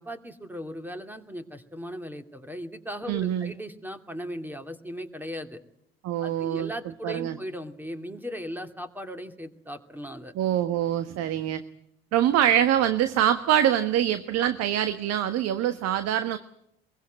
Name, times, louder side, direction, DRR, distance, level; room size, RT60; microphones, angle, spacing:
voice 1, 0.0-5.6 6.2-10.3, equal, 5° right, 7 dB, 2.7 m, -37 dB
voice 2, 3.1-3.5 6.0-6.7 7.0-7.4 10.3-11.6 12.1-16.4, right 11 dB, 55° right, 11 dB, 1.4 m, -24 dB
23.0 x 22.5 x 7.7 m, 0.76 s
hypercardioid pair, 60°, 30 cm